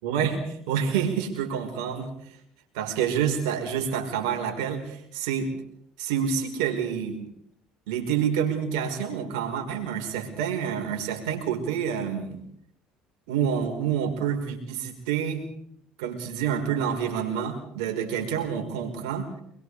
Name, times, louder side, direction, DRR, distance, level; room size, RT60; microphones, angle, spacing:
voice 1, 0.0-2.4 2.7-5.5 6.0-7.2 7.9-12.4 13.3-15.4 16.0-19.3, right 8 dB, 80° right, 4 dB, 5.4 m, -28 dB
26.0 x 23.0 x 5.0 m, 0.69 s
supercardioid pair, 80°, 3 cm